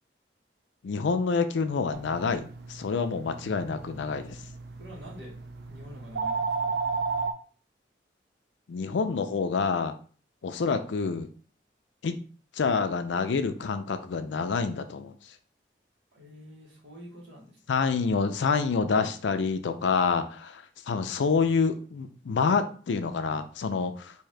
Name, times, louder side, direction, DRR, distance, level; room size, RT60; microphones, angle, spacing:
voice 1, 0.8-4.4 8.7-10.0 10.4-11.3 12.0-12.2 12.6-15.1 17.7-24.1, left 5 dB, 85° left, 9 dB, 0.4 m, -27 dB
sound 1, 1.9-7.3, right 4 dB, 60° right, 0.4 m, -34 dB
voice 2, 4.8-5.3 5.7-6.7 16.1-17.8, equal, 75° right, -3 dB, 1.5 m, -47 dB
3.6 x 2.7 x 3.2 m, 0.42 s
head